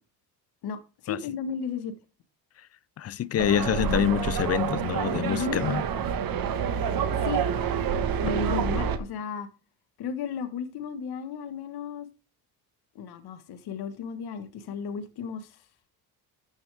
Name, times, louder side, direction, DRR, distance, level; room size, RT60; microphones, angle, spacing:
voice 1, 0.6-1.9 5.2-5.6 7.2-7.4 8.2-9.5 10.0-12.1 12.9-15.6, left 6 dB, 70° left, 1.4 m, -34 dB
voice 2, 3.0-5.8, left 10 dB, 40° left, 0.5 m, -26 dB
sound 1, 3.4-9.0, right 7 dB, 55° right, 1.5 m, -28 dB
12.5 x 6.9 x 3.4 m
cardioid pair, 90°, 40 cm